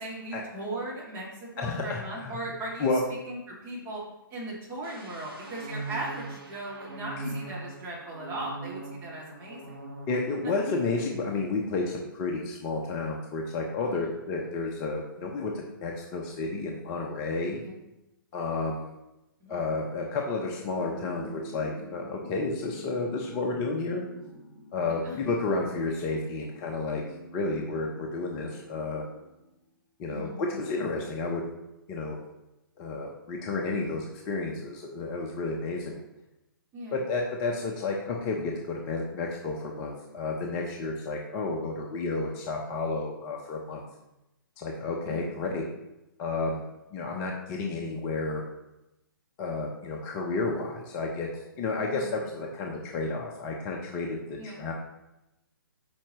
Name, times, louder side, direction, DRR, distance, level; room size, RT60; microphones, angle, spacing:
voice 1, 0.0-4.0 4.3-9.8 10.4-10.5 13.9-14.1 17.6-17.8 19.4-19.6 24.8-25.2 30.1-30.4 36.7-37.0 45.0-45.2 51.9-52.1 54.4-54.6, right 1 dB, 20° right, -5 dB, 2.6 m, -38 dB
voice 2, 1.6-2.3 2.8-3.0 7.2-7.4 10.1-17.6 18.3-18.9 19.5-24.0 24.7-27.0 27.3-29.0 30.0-31.4 31.9-32.2 32.8-36.0 36.9-43.8 44.6-45.6 46.2-46.6 46.9-48.4 49.4-54.7, left 3 dB, 25° left, 0 dB, 0.9 m, -31 dB
sound 1, 4.8-10.5 10.8-11.2, right 2 dB, 85° right, 1.8 m, -41 dB
sound 2, 20.8-29.5, equal, 5° right, 1.6 m, -47 dB
8.7 x 5.7 x 3.1 m, 0.93 s
figure-of-eight pair, 130°, 12 cm